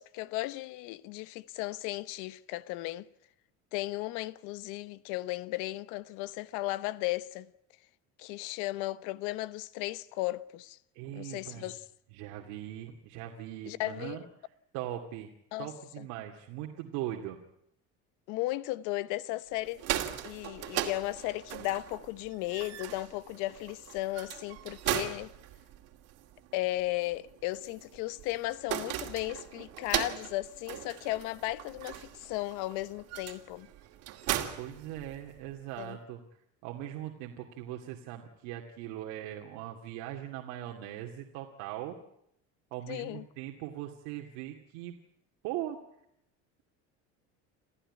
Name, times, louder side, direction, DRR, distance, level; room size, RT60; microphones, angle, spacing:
voice 1, 0.0-3.1 3.7-7.5 8.2-10.8 11.1-11.8 13.7-14.3 15.5-15.7 16.0-16.1 18.3-19.8 20.2-25.3 26.5-33.7 35.8-36.0 42.9-43.2, left 18 dB, 85° left, 1.1 m, -35 dB
voice 2, 10.9-11.7 12.1-15.3 15.6-17.4 34.6-36.2 36.6-42.0 42.7-45.0 45.4-45.8, right 12 dB, 85° right, 2.5 m, -40 dB
sound 1, 19.6-35.5, right 13 dB, 55° right, 2.5 m, -38 dB
28.0 x 15.0 x 9.9 m
cardioid pair, 170°, 30 cm